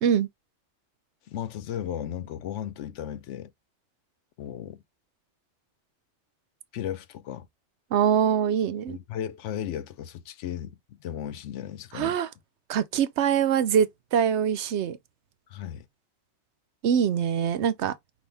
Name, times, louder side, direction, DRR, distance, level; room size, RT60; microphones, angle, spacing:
voice 1, 1.3-3.5 4.4-4.8 6.7-7.5 8.9-12.2 15.5-15.9, left 10 dB, 85° left, 0.9 m, -35 dB
voice 2, 7.9-9.0 11.9-12.3 12.7-15.0 16.8-17.9, right 8 dB, 75° right, 0.9 m, -24 dB
5.5 x 2.5 x 3.3 m
omnidirectional pair, 1.2 m